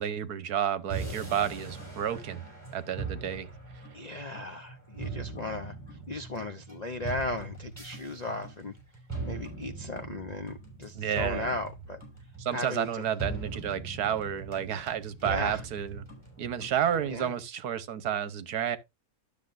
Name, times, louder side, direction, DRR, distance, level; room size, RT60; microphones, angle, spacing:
voice 1, 0.0-2.4 2.7-3.5 10.9-11.5 12.4-16.0 16.4-18.8, right 9 dB, 80° right, 1.4 m, -31 dB
sound 1, 0.9-17.3, right 4 dB, 15° right, 5.1 m, -41 dB
voice 2, 3.9-8.8 9.2-12.0 12.5-13.0 15.2-15.6 17.0-17.4, left 2 dB, 50° left, 0.4 m, -36 dB
12.0 x 6.8 x 2.5 m
omnidirectional pair, 1.6 m